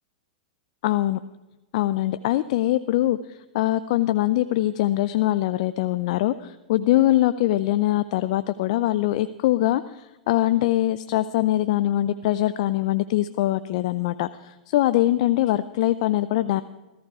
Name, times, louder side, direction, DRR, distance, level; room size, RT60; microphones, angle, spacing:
voice 1, 0.8-1.2 1.7-16.6, left 15 dB, 60° left, 13 dB, 0.5 m, -23 dB
15.0 x 14.5 x 4.8 m, 1.1 s
hypercardioid pair, 120°, 4 cm